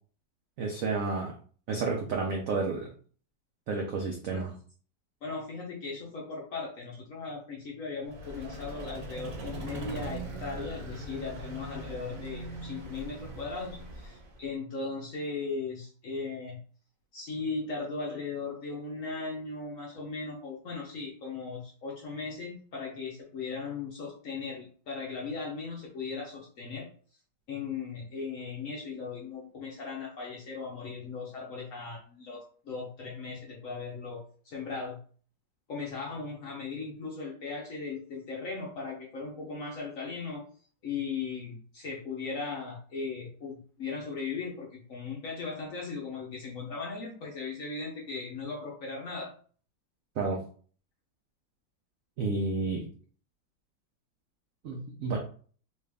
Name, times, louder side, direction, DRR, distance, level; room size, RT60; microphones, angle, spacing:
voice 1, 0.6-1.3 1.7-2.9 3.7-4.5 50.2-50.4 52.2-52.9 54.6-55.2, right 4 dB, 80° right, 0 dB, 0.7 m, -30 dB
voice 2, 5.2-16.6 17.1-26.9 27.5-35.0 35.7-40.4 40.8-49.3, left 4 dB, 60° left, -2 dB, 0.9 m, -38 dB
Vehicle, 8.1-14.5, right 2 dB, 55° right, 1.0 m, -41 dB
3.3 x 2.4 x 3.4 m, 0.43 s
omnidirectional pair, 2.1 m